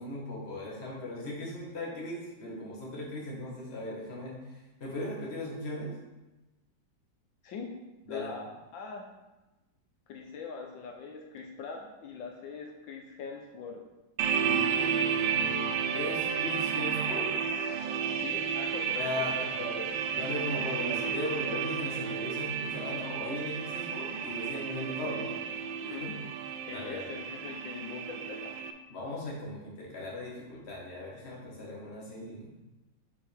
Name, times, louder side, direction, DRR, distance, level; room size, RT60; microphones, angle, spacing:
voice 1, 0.0-5.9 8.1-8.4 14.4-17.3 19.0-19.8 20.1-25.4 25.8-26.1 26.7-27.1 28.9-32.6, left 1 dB, 35° left, -3 dB, 1.8 m, -38 dB
voice 2, 8.1-8.4 8.7-9.1 10.1-13.8 18.2-19.5 25.8-26.1 26.7-28.5, left 5 dB, 80° left, 2 dB, 1.5 m, -42 dB
sound 1, 14.2-28.7, right 7 dB, 85° right, 1.3 m, -32 dB
7.3 x 5.5 x 3.5 m, 1.1 s
omnidirectional pair, 2.1 m